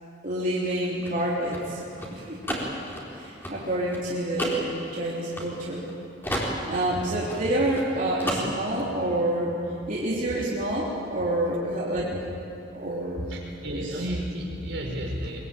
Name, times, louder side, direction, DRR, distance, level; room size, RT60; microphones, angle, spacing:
voice 1, 0.2-1.8 2.1-2.4 3.1-5.9 6.7-9.5 9.9-12.3 12.7-13.3 13.7-13.9, right 1 dB, 45° right, -6 dB, 3.7 m, -28 dB
sound 1, 0.6-5.9 6.2-7.9 8.2-8.9, equal, 10° left, 4.6 m, -33 dB
voice 2, 13.3-15.4, equal, 70° right, 0 dB, 5.2 m, -32 dB
23.0 x 23.0 x 9.3 m, 2.7 s
head